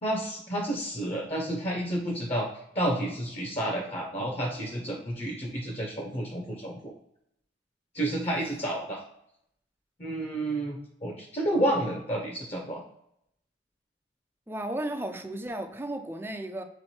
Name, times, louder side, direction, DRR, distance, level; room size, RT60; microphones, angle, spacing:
voice 1, 0.0-2.5 2.7-6.9 7.9-9.0 10.0-12.8, right 1 dB, 35° left, 0.8 m, -30 dB
voice 2, 14.5-16.6, right 1 dB, 15° right, 0.4 m, -34 dB
3.6 x 3.2 x 4.3 m
head